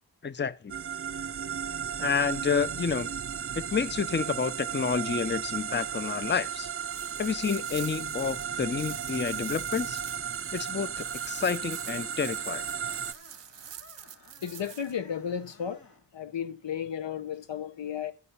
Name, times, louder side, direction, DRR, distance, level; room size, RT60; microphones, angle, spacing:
voice 1, 0.2-0.7 2.0-3.1 3.5-6.7 7.2-10.0 10.5-12.6, left 6 dB, 25° left, 0.6 m, -29 dB
sound 1, 0.7-13.1, right 8 dB, 35° right, 0.4 m, -35 dB
sound 2, 6.8-14.9, right 10 dB, 85° right, 0.6 m, -46 dB
Screech, 10.5-16.0, left 3 dB, 55° left, 2.6 m, -56 dB
voice 2, 14.4-15.8 16.1-18.1, left 8 dB, 85° left, 0.9 m, -34 dB
14.0 x 5.5 x 5.5 m
cardioid pair, 40°, 43 cm